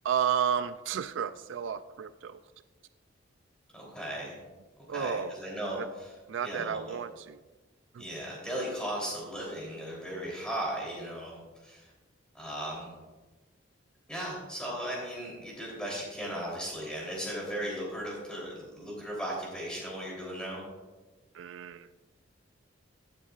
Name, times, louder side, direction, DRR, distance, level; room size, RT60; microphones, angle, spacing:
voice 1, 0.0-2.4 4.9-5.4 5.8-5.9 6.3-7.4 7.9-8.1 21.3-21.9, right 8 dB, 70° right, 13 dB, 0.4 m, -32 dB
voice 2, 3.7-4.3 4.9-5.8 6.4-7.0 8.0-11.9 12.3-12.9 14.1-20.6, equal, 5° left, -4 dB, 3.3 m, -37 dB
15.5 x 9.9 x 2.4 m, 1.2 s
head